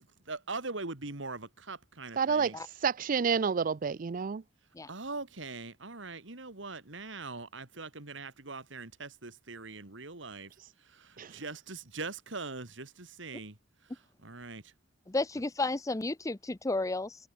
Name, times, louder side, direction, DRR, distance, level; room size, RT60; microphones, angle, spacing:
voice 1, 0.3-2.6 4.9-10.5 10.8-13.6 13.8-14.7, right 3 dB, 65° right, 2.7 m, -42 dB
voice 2, 2.2-4.4 11.2-11.3, right 6 dB, 45° right, 0.4 m, -29 dB
voice 3, 15.1-17.2, left 2 dB, 15° left, 0.6 m, -32 dB
head